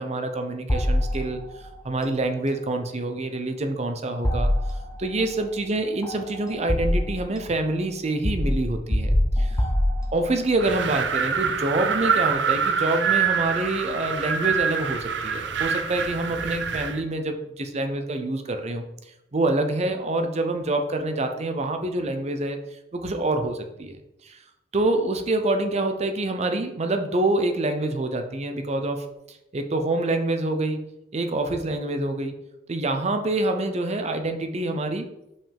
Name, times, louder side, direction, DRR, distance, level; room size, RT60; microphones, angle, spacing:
voice 1, 0.0-1.4 1.8-4.5 5.0-9.5 10.1-18.8 19.3-22.6 22.9-24.0 24.3-24.4 24.7-29.0 29.5-30.8 31.1-32.3 32.7-35.1, right 2 dB, 40° right, 6 dB, 0.7 m, -26 dB
sound 1, 0.7-1.6 4.2-5.1 6.0-7.3 8.2-10.5, left 1 dB, 20° left, 0.7 m, -24 dB
Wind, 10.6-17.0, right 6 dB, 85° right, 0.6 m, -25 dB
5.5 x 5.4 x 3.4 m, 0.89 s
head